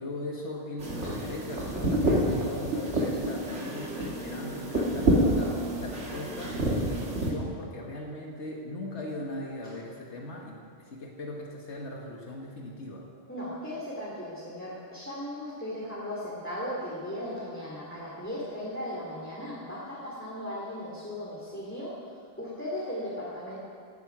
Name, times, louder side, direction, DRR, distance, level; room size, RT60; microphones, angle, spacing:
voice 1, 0.0-13.0, left 1 dB, 80° left, -1 dB, 1.7 m, -39 dB
sound 1, 0.8-7.3, right 1 dB, 90° right, 2.4 m, -28 dB
voice 2, 13.3-22.0 22.4-23.6, left 1 dB, 10° left, -7 dB, 2.6 m, -37 dB
17.5 x 9.1 x 6.0 m, 2.2 s
omnidirectional pair, 1.2 m